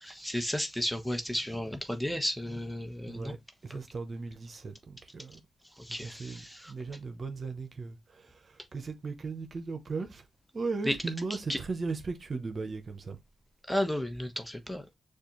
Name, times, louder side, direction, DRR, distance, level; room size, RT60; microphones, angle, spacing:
voice 1, 0.0-3.3 3.7-3.8 5.8-6.7 10.8-11.0 11.5-11.6 13.7-14.8, equal, 5° left, 1.1 m, -33 dB
voice 2, 3.1-3.4 3.6-5.4 5.9-10.3 10.5-13.2, right 4 dB, 55° right, 0.8 m, -37 dB
6.6 x 2.4 x 3.1 m
supercardioid pair, 45°, 0 cm